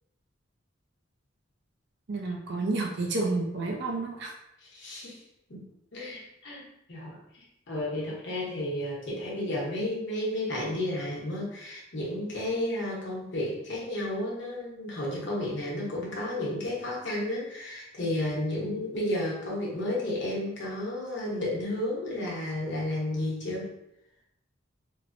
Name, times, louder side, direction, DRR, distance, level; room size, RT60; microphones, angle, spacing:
voice 1, 2.1-4.3, right 3 dB, 60° right, 1 dB, 0.4 m, -30 dB
voice 2, 4.7-5.2 5.5-5.6 5.9-23.7, left 1 dB, 65° left, -4 dB, 0.9 m, -32 dB
3.0 x 2.0 x 2.5 m, 0.82 s
head